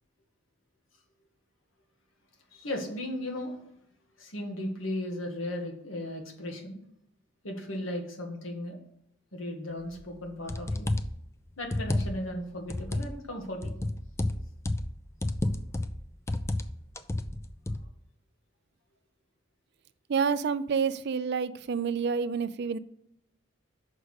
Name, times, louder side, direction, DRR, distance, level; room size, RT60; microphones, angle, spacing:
voice 1, 2.5-3.6 4.2-6.8 7.4-8.8 9.3-10.9 11.6-13.7, left 1 dB, 75° left, 1.8 m, -36 dB
sound 1, 10.0-10.1 10.5-11.2 11.6-12.3 12.7-13.1 13.6-14.9 15.2-16.0 16.3-16.7 17.0-17.8, left 1 dB, 15° left, 0.4 m, -30 dB
voice 2, 20.1-22.8, right 6 dB, 55° right, 0.4 m, -28 dB
6.4 x 5.0 x 6.3 m
head